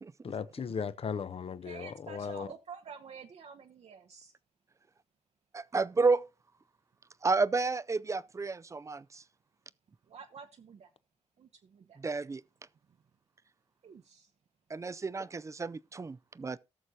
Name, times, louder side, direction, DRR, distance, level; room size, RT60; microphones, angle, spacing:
voice 1, 0.2-2.5, left 6 dB, 55° left, 0.8 m, -37 dB
voice 2, 1.6-4.3 10.1-10.9 11.4-12.0 12.9-13.0 13.8-14.3, right 6 dB, 65° right, 0.8 m, -49 dB
voice 3, 5.5-6.2 7.2-9.2 12.0-12.4 14.7-16.6, right 4 dB, 25° right, 0.4 m, -31 dB
18.5 x 6.5 x 2.8 m
wide cardioid pair, 115°, 12 cm